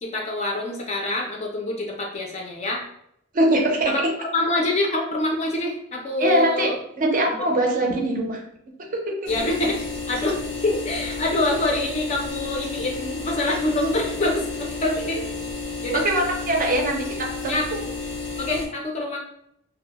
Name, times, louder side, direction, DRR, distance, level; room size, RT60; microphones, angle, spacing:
voice 1, 0.0-2.8 3.9-4.0 4.3-6.7 7.8-7.9 9.3-15.2 15.8-16.1 17.5-17.9 18.4-19.2, left 2 dB, 35° left, 0 dB, 0.4 m, -26 dB
voice 2, 3.3-4.1 6.2-8.4 8.8-9.5 15.9-17.8, right 1 dB, 40° right, 1 dB, 0.4 m, -23 dB
sound 1, 9.2-18.7, left 4 dB, 85° left, 0.8 m, -32 dB
2.2 x 2.0 x 2.9 m, 0.74 s
head